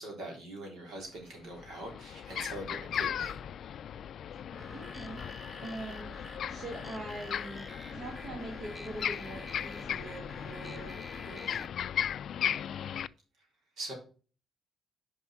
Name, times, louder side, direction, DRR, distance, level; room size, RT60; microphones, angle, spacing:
voice 1, 0.0-3.4 13.8-13.9, right 1 dB, 75° right, 1 dB, 3.5 m, -42 dB
sound 1, 1.0-1.1 1.5-13.1, left 9 dB, 65° left, 0.3 m, -37 dB
sound 2, 4.5-11.7, left 1 dB, ahead, 1.0 m, -47 dB
voice 2, 4.7-5.2 5.6-6.2 6.5-11.0 11.2-11.6, right 2 dB, 50° right, 2 dB, 1.7 m, -43 dB
5.7 x 5.3 x 5.8 m, 0.38 s
cardioid pair, 90°, 0 cm